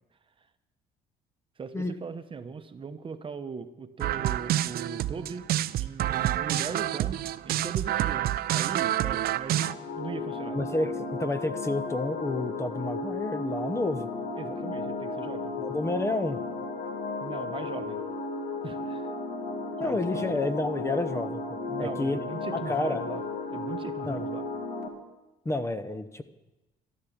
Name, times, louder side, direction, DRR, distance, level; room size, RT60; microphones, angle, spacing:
voice 1, 1.6-5.5 5.8-10.6 14.4-15.5 17.2-18.0 18.6-19.1 19.8-20.4 21.7-23.2 23.5-24.5, right 5 dB, 30° right, 9 dB, 0.9 m, -39 dB
sound 1, 4.0-9.7, right 13 dB, 65° right, 0.5 m, -28 dB
sound 2, 9.5-24.9, left 3 dB, 75° left, 2.3 m, -34 dB
voice 2, 10.5-14.1 15.6-16.4 19.8-21.4 21.8-22.2 22.5-23.1 24.0-24.3 25.4-26.2, left 2 dB, 15° left, 11 dB, 0.8 m, -30 dB
13.5 x 12.0 x 7.2 m, 1.0 s
cardioid pair, 110°, 17 cm